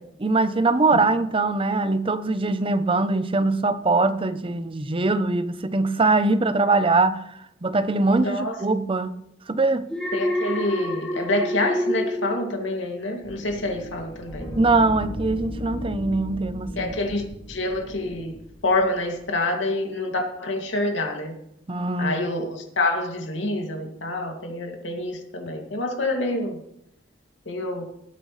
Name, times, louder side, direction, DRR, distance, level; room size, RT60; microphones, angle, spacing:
voice 1, 0.2-7.2 7.6-9.1 9.5-9.9 14.5-16.9 21.7-22.2, right 3 dB, 30° right, 0.7 m, -22 dB
voice 2, 8.2-8.6 10.1-14.5 16.8-18.4 18.6-21.4 22.0-26.6 27.5-27.9, left 2 dB, 80° left, 2.4 m, -27 dB
Alarm, 9.9-13.2 13.6-13.9, equal, 5° left, 1.3 m, -28 dB
sound 1, 13.2-19.2, equal, 20° left, 4.3 m, -36 dB
18.0 x 9.2 x 3.2 m
head